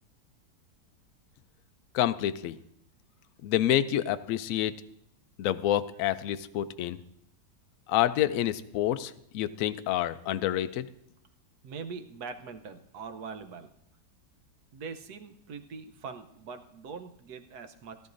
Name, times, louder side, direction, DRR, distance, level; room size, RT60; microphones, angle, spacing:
voice 1, 1.9-2.6 3.4-4.7 5.4-7.0 7.9-10.9, left 12 dB, 85° left, 11 dB, 0.7 m, -28 dB
voice 2, 11.6-13.7 14.7-18.0, right 5 dB, 65° right, 8 dB, 1.3 m, -42 dB
17.5 x 11.5 x 2.6 m, 0.76 s
omnidirectional pair, 2.0 m